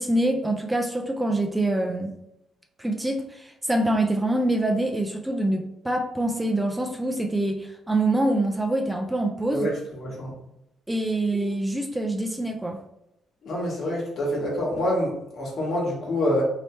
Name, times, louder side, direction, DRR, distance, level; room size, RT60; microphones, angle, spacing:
voice 1, 0.0-2.1 2.8-9.7 10.9-12.8, right 1 dB, 10° right, 3 dB, 0.4 m, -25 dB
voice 2, 9.5-10.3 13.4-16.4, left 1 dB, 60° left, -3 dB, 1.5 m, -26 dB
3.3 x 2.8 x 3.1 m, 0.83 s
cardioid pair, 90°, 0 cm